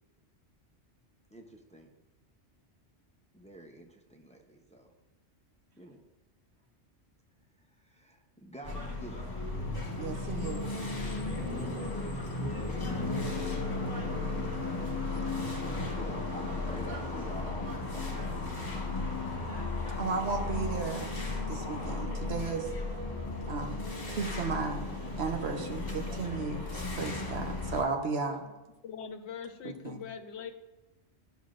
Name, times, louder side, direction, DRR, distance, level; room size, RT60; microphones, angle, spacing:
voice 1, 1.3-1.9 3.3-4.9 5.8-6.0 7.8-9.3 11.8-12.5 13.2-13.6 15.9-19.2 26.0-26.5, right 1 dB, 10° left, 2 dB, 0.6 m, -49 dB
sound 1, 8.6-27.8, left 2 dB, 40° left, 1.4 m, -35 dB
voice 2, 10.0-10.7 20.0-21.2 21.5-22.7 23.5-24.8 25.2-28.4 29.8-30.0, right 4 dB, 65° right, 4 dB, 1.1 m, -34 dB
voice 3, 28.8-30.5, left 7 dB, 75° left, 8 dB, 0.9 m, -42 dB
12.5 x 5.6 x 2.5 m, 1.0 s
omnidirectional pair, 1.2 m